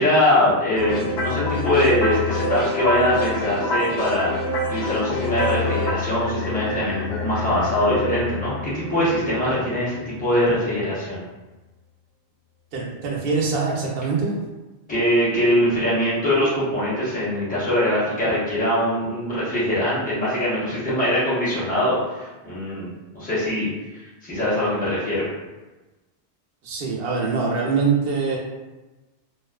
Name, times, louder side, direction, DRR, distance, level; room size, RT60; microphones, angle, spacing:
voice 1, 0.0-11.2 14.9-23.7 23.9-25.3, left 1 dB, 10° left, -10 dB, 0.7 m, -22 dB
sound 1, 0.8-9.9, left 2 dB, 80° left, 0.8 m, -27 dB
voice 2, 12.7-14.3 26.6-28.4, right 4 dB, 65° right, -2 dB, 0.7 m, -23 dB
2.4 x 2.3 x 2.2 m, 1.1 s
omnidirectional pair, 1.1 m